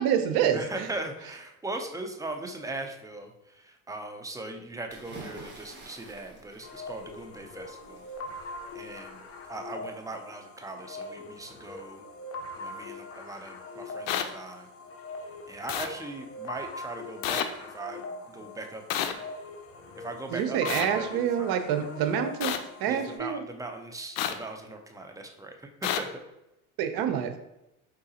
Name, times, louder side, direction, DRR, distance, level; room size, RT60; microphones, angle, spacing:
voice 1, 0.0-0.9 20.3-23.4 26.8-27.4, right 8 dB, 60° right, 8 dB, 0.8 m, -27 dB
voice 2, 0.5-8.0 8.7-9.2 9.5-12.0 12.6-14.7 15.5-18.0 18.3-19.3 19.9-21.1 21.4-21.5 22.9-26.2, right 2 dB, 10° right, 4 dB, 0.5 m, -39 dB
sound 1, 4.9-9.7, right 2 dB, 25° right, 1.6 m, -49 dB
sound 2, 6.6-23.2, left 2 dB, 35° left, 0.8 m, -42 dB
sound 3, 14.1-14.2 15.7-15.9 17.2-17.4 18.9-19.1 20.6-20.9 22.4-22.6 24.2-24.3 25.8-26.0, left 10 dB, 60° left, 0.6 m, -28 dB
4.7 x 3.8 x 2.8 m, 0.91 s
supercardioid pair, 95°, 40 cm